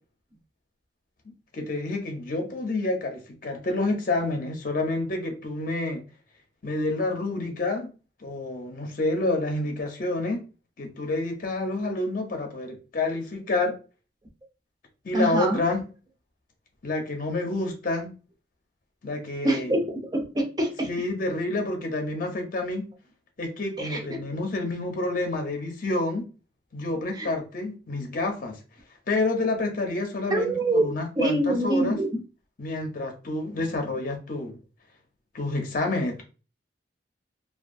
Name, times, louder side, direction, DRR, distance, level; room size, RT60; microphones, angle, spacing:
voice 1, 1.5-6.0 6.6-7.9 8.2-10.4 10.8-13.7 15.0-15.8 16.8-18.1 19.0-19.7 20.8-22.8 23.4-26.2 26.7-28.5 29.1-32.0 32.6-34.6 35.3-36.2, left 2 dB, 50° left, 0.6 m, -28 dB
voice 2, 15.1-15.6 19.4-20.9 23.8-24.3 27.1-27.3 30.3-30.9 31.2-32.1, right 1 dB, 20° right, 0.5 m, -25 dB
2.6 x 2.3 x 2.5 m
head